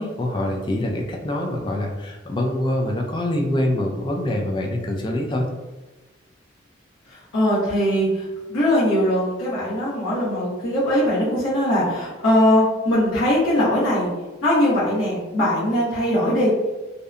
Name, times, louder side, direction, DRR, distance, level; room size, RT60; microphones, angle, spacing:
voice 1, 0.0-5.5, left 1 dB, 25° left, 1 dB, 0.3 m, -25 dB
voice 2, 7.1-14.1 14.4-16.5, left 1 dB, 90° left, -10 dB, 0.9 m, -21 dB
2.7 x 2.1 x 2.4 m, 1.1 s
head